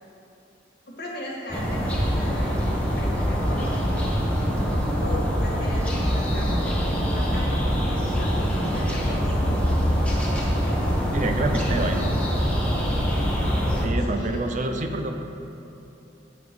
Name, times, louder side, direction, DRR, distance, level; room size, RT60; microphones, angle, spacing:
voice 1, 0.9-2.7 3.0-3.8 5.0-9.3 14.0-14.7, left 1 dB, 60° left, -4 dB, 1.6 m, -37 dB
sound 1, 1.5-13.9, equal, 5° left, 1.0 m, -24 dB
voice 2, 11.1-12.1 13.8-15.2, right 2 dB, 45° right, 5 dB, 0.5 m, -27 dB
9.2 x 3.9 x 5.9 m, 2.8 s
head